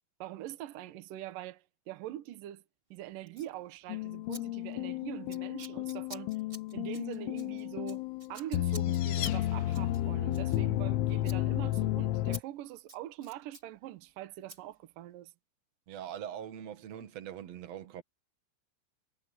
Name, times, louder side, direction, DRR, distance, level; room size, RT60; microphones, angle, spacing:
voice 1, 0.2-2.6 2.9-6.3 6.7-8.0 8.3-15.3, right 13 dB, 80° right, 1.9 m, -43 dB
Scissors, 3.3-3.5 4.3-4.4 4.7-4.9 5.3-10.9 11.2-11.4 11.7-11.8 12.3-12.4 12.7-13.7 14.5-14.6, right 2 dB, 10° right, 4.0 m, -50 dB
sound 1, 3.9-12.4, left 14 dB, 85° left, 3.3 m, -32 dB
sound 2, 8.2-10.2, left 11 dB, 70° left, 3.9 m, -42 dB
voice 2, 15.9-18.0, right 10 dB, 55° right, 1.9 m, -42 dB
omnidirectional pair, 5.7 m